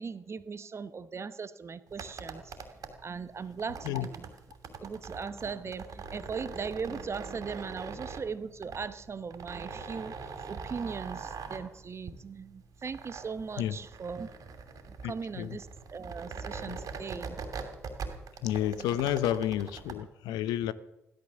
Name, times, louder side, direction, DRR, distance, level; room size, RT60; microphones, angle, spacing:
voice 1, 0.0-2.5 3.0-4.2 4.8-14.3 14.9-17.4 18.8-19.0, right 5 dB, 40° right, 1.2 m, -39 dB
sound 1, 1.9-19.9, right 5 dB, 55° right, 2.9 m, -42 dB
voice 2, 15.0-15.6 16.7-16.8 18.4-20.7, left 12 dB, 70° left, 0.8 m, -31 dB
16.0 x 13.0 x 6.9 m
hypercardioid pair, 45°, 7 cm